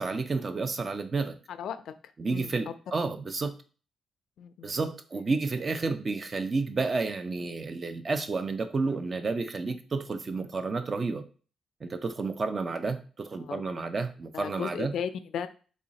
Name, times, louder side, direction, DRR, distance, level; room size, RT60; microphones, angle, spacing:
voice 1, 0.0-1.4 2.2-3.5 4.6-11.2 11.8-14.9, right 3 dB, 35° right, 0.4 m, -31 dB
voice 2, 1.5-1.9 2.3-2.5 4.4-4.7 13.4-13.6 14.3-15.5, left 7 dB, 75° left, 0.3 m, -35 dB
3.1 x 2.4 x 4.0 m
cardioid pair, 100°, 0 cm